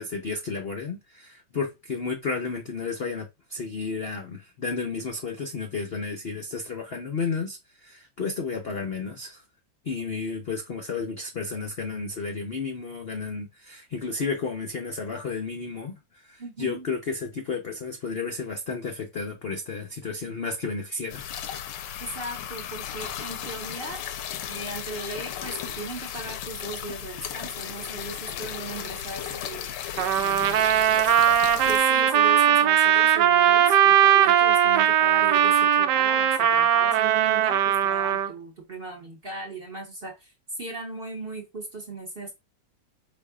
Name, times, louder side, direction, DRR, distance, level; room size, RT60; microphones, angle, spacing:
voice 1, 0.0-9.4 9.8-21.3, left 4 dB, 55° left, 0.6 m, -32 dB
voice 2, 16.4-16.9 22.0-24.0 24.5-29.7 30.2-31.1 31.6-42.3, right 2 dB, 40° right, 0.9 m, -38 dB
sound 1, 21.1-31.8, left 10 dB, 85° left, 1.3 m, -35 dB
Trumpet, 30.0-38.3, right 10 dB, 80° right, 1.2 m, -20 dB
5.3 x 4.2 x 2.3 m
omnidirectional pair, 1.9 m